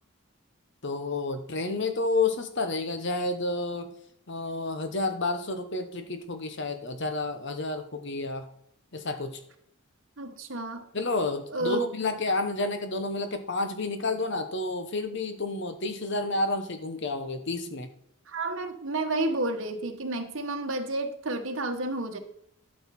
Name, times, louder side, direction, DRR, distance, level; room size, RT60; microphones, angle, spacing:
voice 1, 0.8-3.9 4.3-8.5 8.9-9.4 10.9-17.9, left 3 dB, 50° left, 8 dB, 1.0 m, -30 dB
voice 2, 10.2-10.9 11.5-11.9 18.3-22.2, right 2 dB, 60° right, 4 dB, 1.3 m, -30 dB
12.0 x 6.6 x 4.3 m, 0.72 s
head